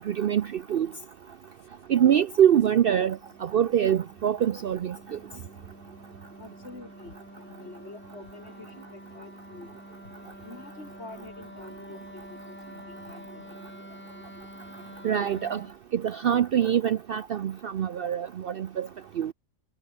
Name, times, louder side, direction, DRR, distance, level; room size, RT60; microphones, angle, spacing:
voice 1, 0.1-0.9 1.9-5.2 15.0-15.6 15.9-18.9 19.2-19.3, right 9 dB, 55° right, 0.7 m, -24 dB
Wind instrument woodwind instrument, 2.8-15.8, equal, 10° left, 4.4 m, -48 dB
voice 2, 6.4-9.7 10.4-12.2 12.5-13.6, left 2 dB, 55° left, 3.9 m, -47 dB
omnidirectional pair, 1.3 m